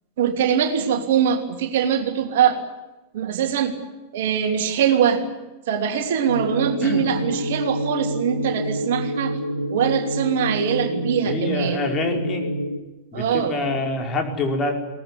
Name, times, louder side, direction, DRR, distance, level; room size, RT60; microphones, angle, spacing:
voice 1, 0.2-2.6 3.1-3.8 4.1-5.2 5.7-9.4 9.7-11.8 13.1-13.6, right 8 dB, 55° right, 5 dB, 3.0 m, -22 dB
sound 1, 6.3-12.8, equal, 90° right, 2.0 m, -27 dB
voice 2, 11.3-12.4 13.1-14.7, left 3 dB, 25° left, 3 dB, 4.9 m, -26 dB
22.5 x 19.5 x 9.7 m, 1.1 s
figure-of-eight pair, 90°, 0 cm